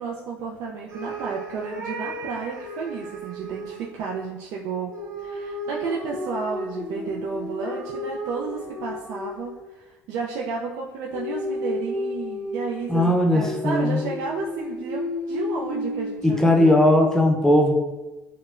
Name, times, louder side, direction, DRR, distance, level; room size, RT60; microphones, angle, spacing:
voice 1, 0.0-4.9 5.2-17.1, right 5 dB, 75° right, -2 dB, 0.4 m, -32 dB
sound 1, 0.9-3.9 4.9-9.7 11.1-17.2, left 1 dB, 55° right, 1.1 m, -33 dB
voice 2, 12.9-14.0 16.2-17.7, left 1 dB, 5° left, 1 dB, 0.6 m, -18 dB
4.7 x 2.1 x 2.4 m, 1.1 s
supercardioid pair, 100°, 6 cm